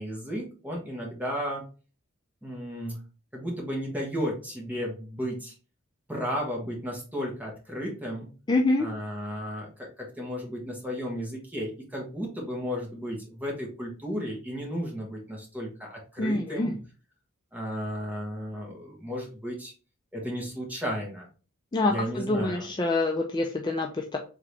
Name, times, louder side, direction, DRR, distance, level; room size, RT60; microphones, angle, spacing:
voice 1, 0.0-1.6 2.4-3.0 3.3-5.5 6.1-8.3 8.8-16.7 17.5-19.7 20.1-21.3 21.9-22.7, equal, 10° right, -2 dB, 1.3 m, -34 dB
voice 2, 8.5-8.9 16.2-16.8 21.7-24.2, left 2 dB, 20° left, 2 dB, 0.4 m, -26 dB
3.8 x 3.5 x 3.2 m, 0.36 s
head